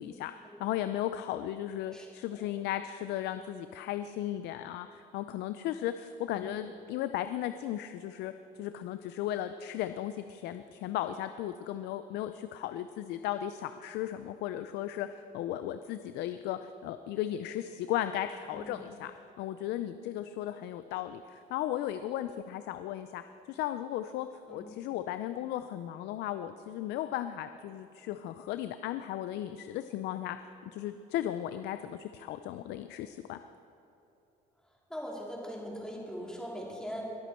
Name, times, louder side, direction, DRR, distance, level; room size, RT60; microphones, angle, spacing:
voice 1, 0.0-0.3 0.6-8.3 8.6-23.2 23.5-30.4 30.7-33.4, left 12 dB, 80° left, 10 dB, 0.5 m, -36 dB
voice 2, 34.9-37.0, equal, 5° left, -3 dB, 3.1 m, -41 dB
22.0 x 8.3 x 4.4 m, 3.0 s
cardioid pair, 110°, 17 cm